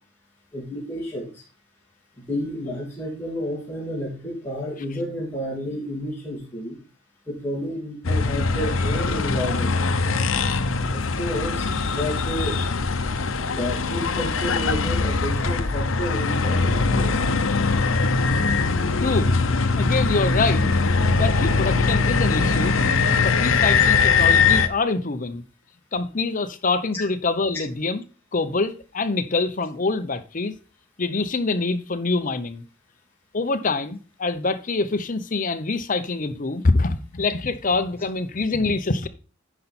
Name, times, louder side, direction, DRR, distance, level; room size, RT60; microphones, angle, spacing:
voice 1, 0.5-1.4 2.2-6.8 7.3-10.2 10.9-12.6 13.4-17.1, equal, 10° left, 2.6 m, -31 dB
sound 1, 8.0-24.7, left 4 dB, 75° left, 0.8 m, -21 dB
voice 2, 19.0-19.3 19.7-22.7 23.2-25.4 25.9-28.0 28.3-30.5 31.0-32.6 33.3-39.1, left 3 dB, 40° left, 0.8 m, -25 dB
10.0 x 5.5 x 4.2 m
head